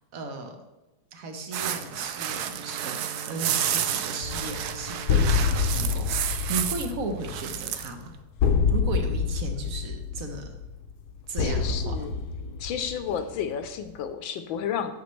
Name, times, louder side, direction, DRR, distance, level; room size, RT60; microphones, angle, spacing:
voice 1, 0.1-0.6 1.1-8.1 8.7-10.5 11.3-11.9, right 3 dB, 55° right, 5 dB, 1.1 m, -36 dB
sound 1, 1.5-6.9 7.2-7.9, right 10 dB, 75° right, 0.9 m, -30 dB
Bowed string instrument, 2.2-7.1, right 2 dB, 10° right, 0.9 m, -45 dB
sound 2, 4.2-13.6, left 5 dB, 70° left, 1.1 m, -27 dB
voice 2, 11.4-12.1 12.6-14.9, left 8 dB, 85° left, 9 dB, 1.4 m, -32 dB
9.3 x 6.3 x 3.2 m, 1.0 s
omnidirectional pair, 2.1 m